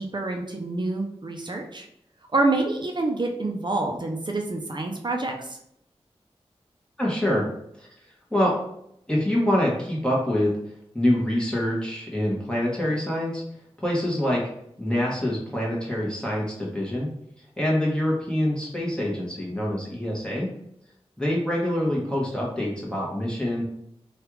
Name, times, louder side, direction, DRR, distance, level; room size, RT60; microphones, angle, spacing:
voice 1, 0.0-1.9 2.3-5.6, right 2 dB, 45° right, 2 dB, 0.5 m, -27 dB
voice 2, 7.0-7.4 7.8-7.9 8.3-8.5 9.1-10.5 10.9-13.4 13.8-14.4 14.8-17.1 17.6-20.5 21.2-23.6, left 1 dB, 10° left, -4 dB, 1.1 m, -25 dB
3.2 x 2.4 x 3.0 m, 0.74 s
cardioid pair, 45°, 11 cm